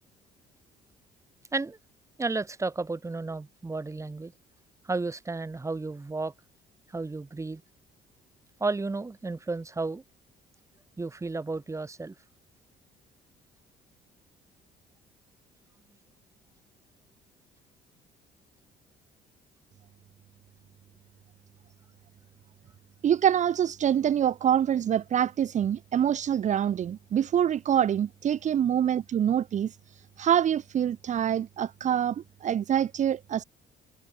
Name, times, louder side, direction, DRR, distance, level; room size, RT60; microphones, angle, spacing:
voice 1, 2.2-4.3 4.9-6.3 6.9-7.6 8.6-10.0 11.0-12.2, right 3 dB, 15° right, 3.6 m, -32 dB
voice 2, 23.0-33.4, right 9 dB, 45° right, 1.0 m, -25 dB
cardioid pair, 110°, 17 cm